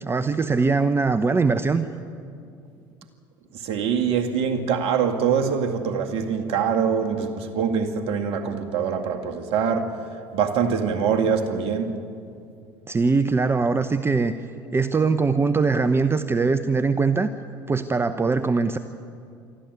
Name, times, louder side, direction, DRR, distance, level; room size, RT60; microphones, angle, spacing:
voice 1, 0.0-1.8 12.9-14.3 14.7-17.3 17.7-18.8, right 4 dB, 20° right, 0.8 m, -21 dB
voice 2, 3.5-10.0 10.3-12.0, right 6 dB, 55° right, 2.1 m, -24 dB
23.0 x 14.0 x 9.6 m
hypercardioid pair, 75°, 11 cm